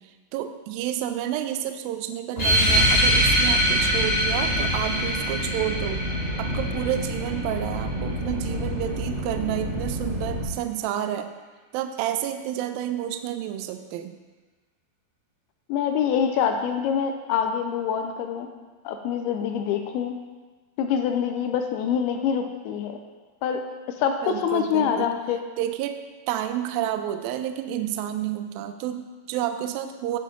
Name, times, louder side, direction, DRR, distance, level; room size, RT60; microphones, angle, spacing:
voice 1, 0.0-6.1 6.4-11.3 11.7-14.2 24.2-25.1 25.6-26.0 26.3-30.2, right 11 dB, 85° right, 8 dB, 2.1 m, -30 dB
sound 1, 2.4-7.4, equal, 25° left, 1.4 m, -23 dB
sound 2, 2.7-10.4, equal, 40° right, 1.0 m, -30 dB
voice 2, 15.7-18.5 18.9-20.2 20.8-23.0 23.4-25.4, left 8 dB, 80° left, 5 dB, 2.4 m, -25 dB
9.4 x 6.8 x 3.7 m, 1.3 s
omnidirectional pair, 4.7 m